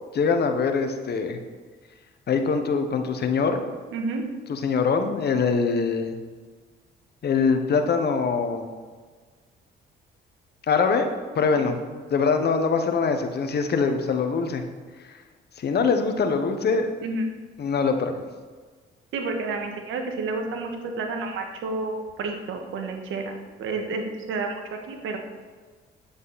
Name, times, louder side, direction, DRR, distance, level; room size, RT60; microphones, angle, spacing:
voice 1, 0.1-1.4 2.3-3.6 4.5-6.2 7.2-8.7 10.7-11.1 11.3-14.6 15.0-15.1 15.6-17.0 17.6-18.2, left 5 dB, 55° left, 6 dB, 1.2 m, -23 dB
voice 2, 3.9-4.2 11.6-11.7 17.0-17.2 19.1-23.3 23.6-24.6 24.9-25.2, right 3 dB, 80° right, 4 dB, 1.6 m, -30 dB
9.7 x 8.4 x 4.2 m, 1.5 s
cardioid pair, 90°, 20 cm